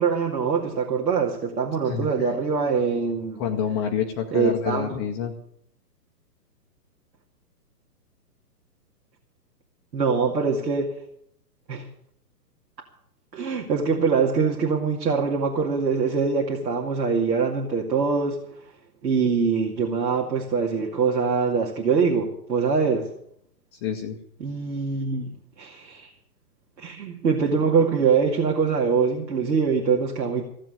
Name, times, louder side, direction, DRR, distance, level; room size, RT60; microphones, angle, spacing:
voice 1, 0.0-3.4 4.3-4.9 9.9-10.9 11.7-11.9 13.3-18.4 19.0-23.1 24.4-26.1 26.8-30.4, right 5 dB, 80° right, 0 dB, 2.4 m, -23 dB
voice 2, 1.8-2.3 3.4-5.3 23.7-24.2, left 8 dB, 15° left, 2 dB, 0.6 m, -28 dB
15.5 x 7.7 x 9.0 m, 0.71 s
hypercardioid pair, 135°, 49 cm